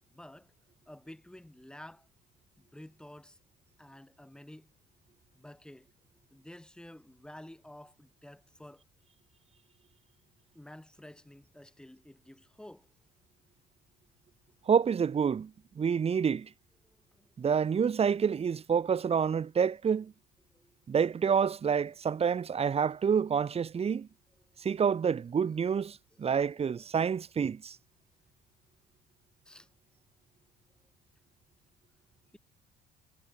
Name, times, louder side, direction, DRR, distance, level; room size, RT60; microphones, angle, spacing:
voice 1, 0.1-0.5 0.9-2.1 2.6-3.4 3.8-4.7 5.3-5.9 6.3-8.8 10.5-12.9 16.8-17.5 20.4-20.7 25.4-25.5 26.1-26.9 29.4-29.7, left 1 dB, 5° left, 5.1 m, -51 dB
voice 2, 14.7-15.5 15.8-16.5 17.4-20.1 20.9-24.1 24.6-27.8, right 7 dB, 35° right, 2.2 m, -28 dB
cardioid pair, 110°, 17 cm